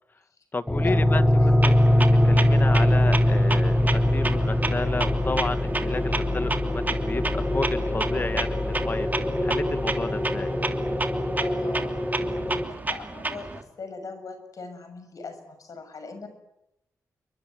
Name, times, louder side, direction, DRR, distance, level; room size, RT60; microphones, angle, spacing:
voice 1, 0.5-10.5, left 3 dB, 30° left, 12 dB, 1.7 m, -32 dB
sound 1, 0.7-12.6, left 1 dB, 10° left, 4.0 m, -23 dB
voice 2, 1.3-1.6 11.4-16.3, left 4 dB, 65° left, 9 dB, 6.7 m, -40 dB
Clock, 1.6-13.6, right 3 dB, 25° right, 2.7 m, -32 dB
29.0 x 23.5 x 7.9 m, 0.86 s
wide cardioid pair, 100°, 6 cm